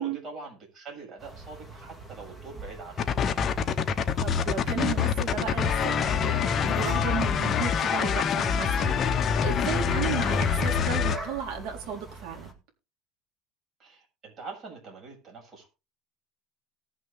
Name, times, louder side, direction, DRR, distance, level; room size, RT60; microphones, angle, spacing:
voice 1, 0.0-3.0 13.8-15.7, right 4 dB, 35° right, 0 dB, 7.1 m, -43 dB
sound 1, 1.2-12.5, right 3 dB, 10° right, 2.0 m, -44 dB
sound 2, 3.0-11.2, left 7 dB, 30° left, 1.0 m, -25 dB
voice 2, 4.2-9.1 9.4-12.5, right 7 dB, 65° right, 1 dB, 4.0 m, -34 dB
19.0 x 6.4 x 3.6 m, 0.30 s
cardioid pair, 145°, 0 cm